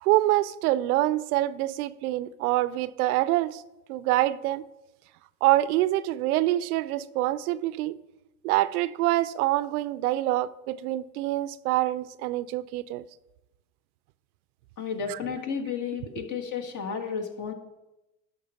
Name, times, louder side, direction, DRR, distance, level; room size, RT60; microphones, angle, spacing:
voice 1, 0.0-3.6 3.9-4.6 5.4-8.0 8.4-13.1 15.1-15.2, right 16 dB, 75° right, 0.6 m, -25 dB
voice 2, 14.8-17.5, left 6 dB, 40° left, 1.7 m, -32 dB
11.5 x 4.5 x 5.7 m
hypercardioid pair, 85°, 45 cm